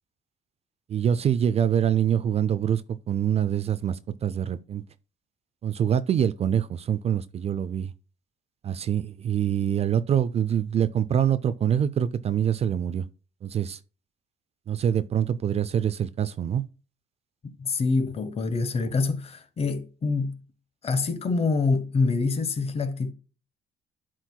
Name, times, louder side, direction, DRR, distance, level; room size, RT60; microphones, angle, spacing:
voice 1, 0.9-2.8 3.1-4.8 5.6-7.9 8.6-13.0 13.4-13.8 14.7-16.6, right 9 dB, 40° right, 0.4 m, -25 dB
voice 2, 17.4-20.4 20.8-23.1, left 4 dB, 35° left, 1.1 m, -26 dB
11.5 x 4.5 x 2.2 m
cardioid pair, 110°, 17 cm